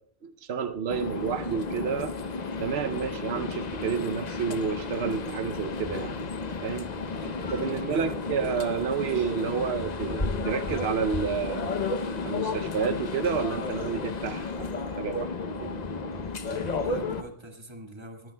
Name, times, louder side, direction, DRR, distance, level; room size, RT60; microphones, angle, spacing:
voice 1, 0.2-2.1 2.6-6.2 6.6-6.9 7.5-11.8 12.2-15.8, right 6 dB, 85° right, 9 dB, 0.9 m, -30 dB
Bicycle, 0.6-16.9, left 1 dB, 25° left, 6.6 m, -43 dB
sound 1, 0.9-17.2, left 4 dB, 45° left, 0.8 m, -33 dB
voice 2, 7.1-8.3 16.4-18.3, right 1 dB, 25° right, 4 dB, 1.4 m, -43 dB
19.5 x 15.5 x 2.2 m, 0.63 s
omnidirectional pair, 1.0 m